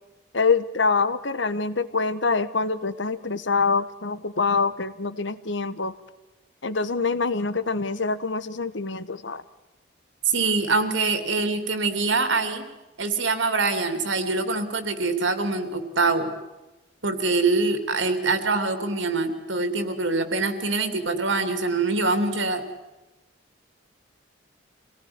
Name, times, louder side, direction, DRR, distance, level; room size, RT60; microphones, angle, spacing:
voice 1, 0.3-5.9 6.6-9.4, left 4 dB, 65° left, 14 dB, 1.3 m, -25 dB
voice 2, 10.2-12.6 13.0-16.3 17.0-22.6, right 3 dB, 70° right, 9 dB, 3.0 m, -24 dB
26.0 x 18.5 x 9.7 m, 1.0 s
head